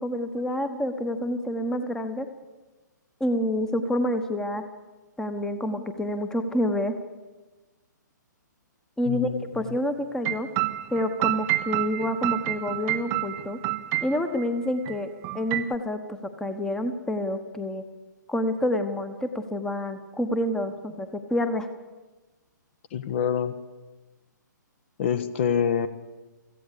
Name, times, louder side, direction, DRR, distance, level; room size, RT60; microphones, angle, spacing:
voice 1, 0.0-2.3 3.2-4.6 5.2-6.9 9.0-10.5 10.9-13.6 13.9-15.1 15.3-17.8 18.3-21.7, left 1 dB, 5° left, 10 dB, 1.2 m, -28 dB
voice 2, 9.1-9.5 22.9-23.5 25.0-25.9, left 8 dB, 35° left, 14 dB, 1.1 m, -26 dB
sound 1, 10.2-14.5 14.9-15.0 15.2-15.7, right 18 dB, 20° right, 0.6 m, -29 dB
25.0 x 15.5 x 6.9 m, 1.2 s
figure-of-eight pair, 125°, 10 cm